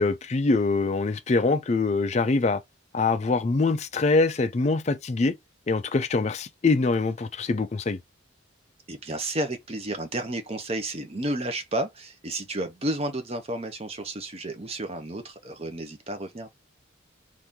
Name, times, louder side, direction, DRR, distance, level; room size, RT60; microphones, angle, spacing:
voice 1, 0.0-2.6 2.9-5.3 5.7-8.0, left 3 dB, 35° left, 0.4 m, -24 dB
voice 2, 8.9-16.5, right 1 dB, 30° right, 0.7 m, -32 dB
2.9 x 2.6 x 3.6 m
head